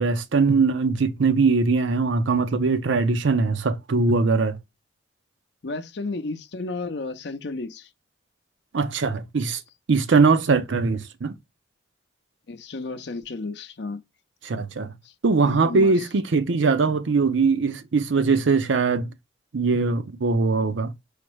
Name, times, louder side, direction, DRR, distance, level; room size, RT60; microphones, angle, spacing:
voice 1, 0.0-4.6 8.7-9.6 9.9-11.4 14.4-14.9 15.2-19.1 19.5-20.9, right 4 dB, 75° right, 0.6 m, -21 dB
voice 2, 5.6-7.9 12.5-14.0 15.0-15.1 15.4-16.1, left 3 dB, 60° left, 0.6 m, -33 dB
4.9 x 2.0 x 4.4 m
head